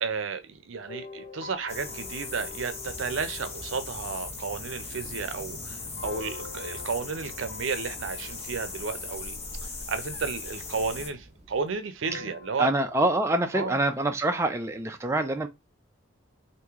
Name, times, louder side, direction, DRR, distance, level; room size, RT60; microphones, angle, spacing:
voice 1, 0.0-9.4 9.9-12.7 13.5-13.8, right 5 dB, 80° right, 0.6 m, -33 dB
sound 1, 0.9-10.9 12.0-14.5, left 4 dB, 65° left, 1.2 m, -47 dB
sound 2, 1.7-11.1, left 4 dB, 30° left, 0.8 m, -39 dB
sound 3, 2.8-11.8, right 1 dB, 35° right, 0.8 m, -49 dB
voice 2, 12.6-15.5, right 1 dB, 15° right, 0.4 m, -25 dB
3.1 x 2.7 x 3.5 m
head